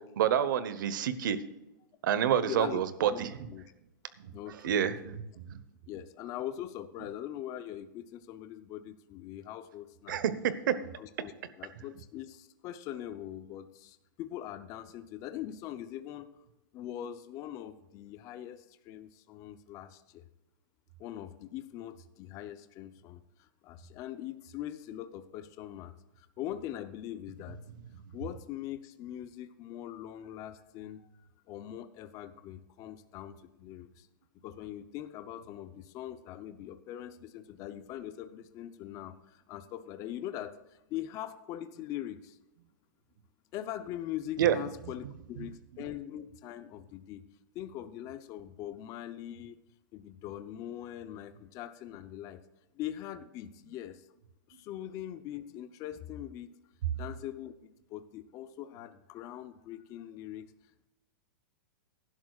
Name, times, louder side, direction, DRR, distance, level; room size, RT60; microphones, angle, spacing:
voice 1, 0.2-1.4 2.0-3.5 4.2-4.3 4.6-5.6 10.1-10.8 44.4-44.6, right 9 dB, 70° right, 13 dB, 1.1 m, -28 dB
voice 2, 2.3-2.8 3.1-3.7 4.3-5.2 5.9-10.2 11.0-16.4 16.7-20.2 21.0-27.6 28.1-34.1 34.4-42.4 43.5-47.3 47.5-49.6 49.9-52.4 52.7-54.1 54.5-56.5 56.9-57.5 57.9-60.5, left 12 dB, 30° left, 10 dB, 0.6 m, -42 dB
18.0 x 11.0 x 2.4 m, 0.96 s
supercardioid pair, 150°, 11 cm